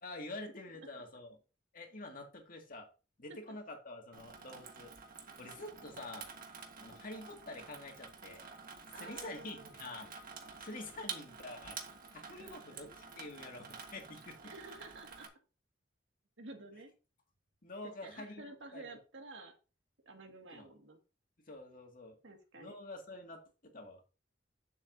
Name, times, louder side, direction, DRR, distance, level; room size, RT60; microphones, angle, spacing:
voice 1, 0.0-1.4 1.7-2.9 3.2-4.9 5.4-6.3 6.8-8.5 8.9-10.1 10.6-11.8 12.1-14.5 17.6-18.5 18.7-19.0 20.5-20.7 21.5-22.2 22.6-24.0, left 2 dB, 50° left, 2 dB, 2.1 m, -47 dB
Water tap faucet / Sink (filling or washing), 4.1-15.3, right 5 dB, 50° right, 1.4 m, -49 dB
voice 2, 8.9-9.7 12.4-12.9 14.4-15.3 16.4-16.9 18.0-19.5 20.1-21.0 22.2-22.8, right 2 dB, 90° right, 3 dB, 2.0 m, -51 dB
9.2 x 7.2 x 2.7 m, 0.33 s
head